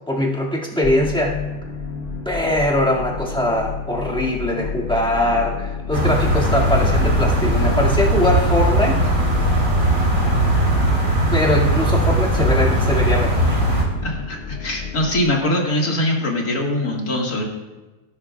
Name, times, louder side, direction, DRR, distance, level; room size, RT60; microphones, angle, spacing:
voice 1, 0.1-1.4 2.3-9.1 11.3-13.6, left 1 dB, 5° left, -4 dB, 2.0 m, -21 dB
sound 1, 0.8-15.2, left 6 dB, 45° left, 0.7 m, -29 dB
sound 2, 5.9-13.8, right 1 dB, 40° right, 3.6 m, -19 dB
voice 2, 14.0-17.4, left 1 dB, 80° left, -1 dB, 2.5 m, -22 dB
18.0 x 11.0 x 2.4 m, 1.2 s
omnidirectional pair, 1.6 m